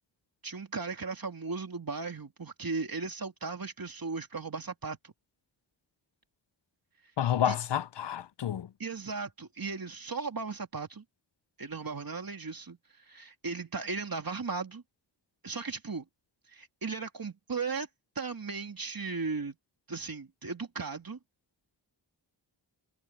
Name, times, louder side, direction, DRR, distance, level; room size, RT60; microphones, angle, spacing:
voice 1, 0.4-5.1 7.4-7.5 8.8-11.0 11.6-14.8 15.4-16.1 16.5-17.9 18.1-19.6 19.9-21.2, right 4 dB, 50° right, 3.0 m, -36 dB
voice 2, 7.2-8.7, left 10 dB, 70° left, 0.6 m, -29 dB
wide cardioid pair, 60°, 44 cm